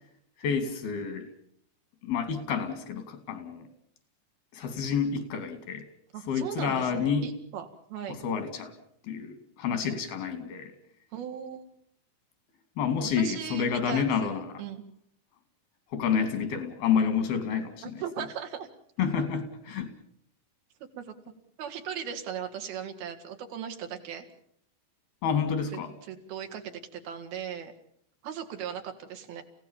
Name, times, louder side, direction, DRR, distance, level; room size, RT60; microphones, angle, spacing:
voice 1, 0.4-1.3 2.0-3.7 4.5-5.9 6.3-7.3 8.1-8.7 9.0-10.7 12.8-14.6 15.9-18.0 19.0-19.9 25.2-25.9, left 6 dB, 90° left, 9 dB, 4.5 m, -29 dB
voice 2, 6.1-8.2 11.1-11.7 13.2-14.8 17.8-18.7 19.0-19.1 21.0-21.1 21.6-24.3 26.1-27.7 28.2-29.4, right 8 dB, 90° right, 5 dB, 4.0 m, -38 dB
29.5 x 16.5 x 7.3 m, 0.67 s
omnidirectional pair, 4.2 m